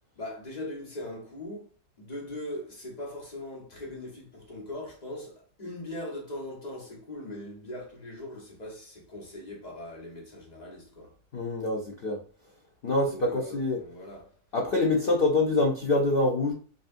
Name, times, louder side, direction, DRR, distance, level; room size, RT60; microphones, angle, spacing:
voice 1, 0.2-1.7 2.0-11.1 13.1-14.3 15.0-15.1, left 1 dB, 30° left, 1.0 m, -40 dB
voice 2, 11.3-12.2 12.8-13.8 14.5-16.5, left 2 dB, 85° left, 0.5 m, -25 dB
5.2 x 2.5 x 2.5 m
omnidirectional pair, 1.9 m